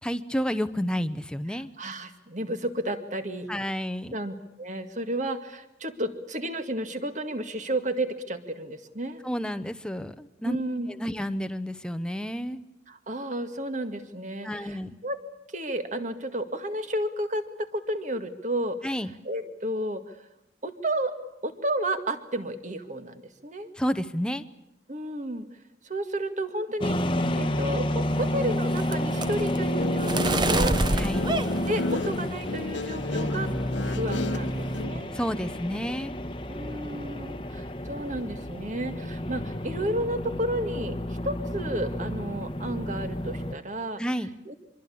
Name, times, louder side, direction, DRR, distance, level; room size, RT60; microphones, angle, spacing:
voice 1, 0.0-1.7 3.5-4.2 9.2-10.6 10.9-12.6 14.4-14.9 18.8-19.1 23.7-24.4 30.9-31.3 35.1-36.2 44.0-44.3, equal, 5° left, 9 dB, 0.9 m, -30 dB
voice 2, 1.8-3.5 4.1-9.2 10.4-10.9 12.9-14.8 15.0-15.2 15.5-18.8 19.3-20.2 20.6-21.1 21.4-23.7 24.9-25.5 25.8-27.0 27.3-30.8 31.7-33.5 33.9-35.2 36.5-41.0 41.2-44.0 44.5-44.6, right 1 dB, 40° right, 8 dB, 2.0 m, -32 dB
sound 1, 26.8-43.6, left 1 dB, 30° left, 1.2 m, -30 dB
sound 2, 28.1-32.5 32.9-33.3 33.6-33.9 34.2-34.8, right 2 dB, 25° right, 1.0 m, -29 dB
Guitar, 29.6-34.9, left 2 dB, 85° left, 1.5 m, -34 dB
25.0 x 24.0 x 8.6 m, 0.85 s
head